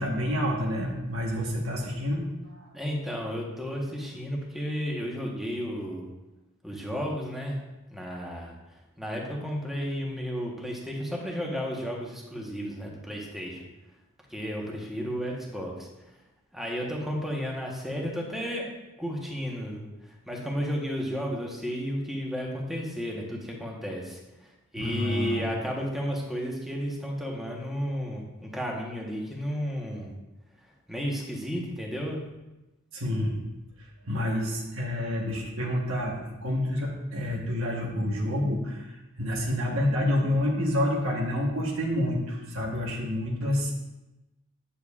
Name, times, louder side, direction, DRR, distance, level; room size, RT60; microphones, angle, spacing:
voice 1, 0.0-2.7 24.7-25.5 32.9-33.4 34.1-43.7, left 1 dB, 65° right, -2 dB, 1.2 m, -28 dB
voice 2, 2.7-6.1 6.6-7.6 7.9-8.5 9.0-13.6 14.3-15.9 16.5-18.7 19.0-19.9 20.3-30.2 30.9-32.2, equal, ahead, -2 dB, 1.1 m, -33 dB
9.0 x 6.7 x 2.4 m, 1.0 s
head